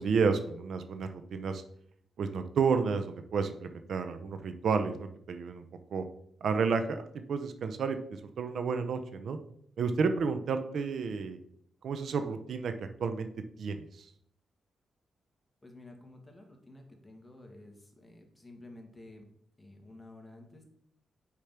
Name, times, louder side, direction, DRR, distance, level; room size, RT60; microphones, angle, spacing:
voice 1, 0.0-1.6 2.2-5.6 5.9-6.0 6.4-9.4 9.8-11.4 11.8-13.3 13.6-14.1, right 5 dB, 70° right, 8 dB, 0.7 m, -31 dB
voice 2, 15.6-19.2 19.6-20.6, left 2 dB, 15° left, 2 dB, 2.0 m, -52 dB
6.7 x 4.9 x 5.9 m, 0.70 s
cardioid pair, 80°, 0 cm